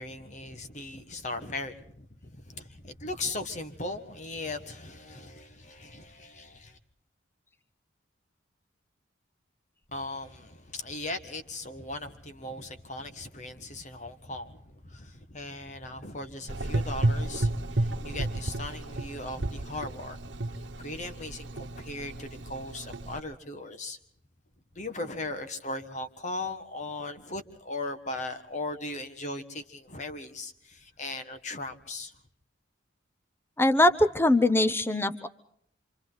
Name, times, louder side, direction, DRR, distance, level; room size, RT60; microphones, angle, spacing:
voice 1, 0.0-6.8 9.9-20.2 20.8-24.0 24.7-32.1, left 2 dB, 35° left, 1.6 m, -38 dB
Gurgling / Engine, 16.5-23.2, right 1 dB, 65° right, 1.2 m, -32 dB
voice 2, 33.6-35.3, left 1 dB, 10° left, 0.8 m, -22 dB
27.5 x 27.0 x 4.0 m
head